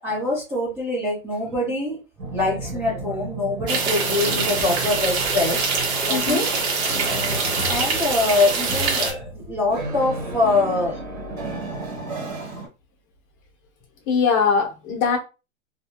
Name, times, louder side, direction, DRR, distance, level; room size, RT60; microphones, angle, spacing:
voice 1, 0.0-2.0 2.3-5.6 6.1-6.4 7.7-11.0, left 2 dB, 5° right, -6 dB, 0.3 m, -24 dB
sound 1, 2.2-12.7, right 1 dB, 85° right, 1.4 m, -33 dB
sound 2, 3.7-9.1, right 4 dB, 50° right, 1.1 m, -24 dB
voice 2, 6.1-6.4 14.1-15.2, left 6 dB, 30° left, 1 dB, 0.9 m, -21 dB
2.4 x 2.2 x 2.9 m, 0.30 s
hypercardioid pair, 130°, 40 cm